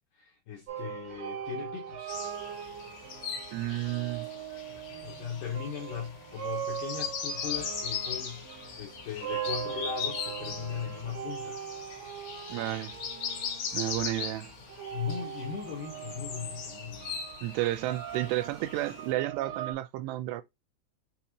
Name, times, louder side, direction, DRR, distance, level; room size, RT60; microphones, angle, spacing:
voice 1, 0.1-2.2 5.0-11.6 14.9-17.2, left 8 dB, 80° left, 2.0 m, -38 dB
sound 1, 0.7-19.7, right 10 dB, 65° right, 1.7 m, -41 dB
sound 2, 2.1-19.1, left 6 dB, 60° left, 2.2 m, -39 dB
voice 2, 3.5-4.3 12.5-13.0 13.7-14.5 17.4-20.4, right 15 dB, 85° right, 2.7 m, -32 dB
6.8 x 2.5 x 2.9 m
omnidirectional pair, 4.9 m